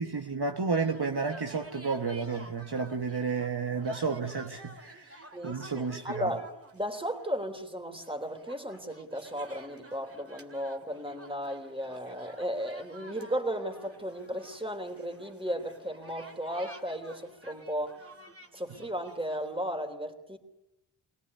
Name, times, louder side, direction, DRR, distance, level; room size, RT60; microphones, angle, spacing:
voice 1, 0.0-6.4, right 4 dB, 55° right, 1.6 m, -32 dB
sound 1, 0.8-19.6, right 1 dB, 30° right, 2.4 m, -52 dB
voice 2, 5.3-6.5 6.7-18.1 18.5-20.4, equal, 10° right, 3.4 m, -35 dB
24.0 x 17.5 x 9.8 m
cardioid pair, 50°, 48 cm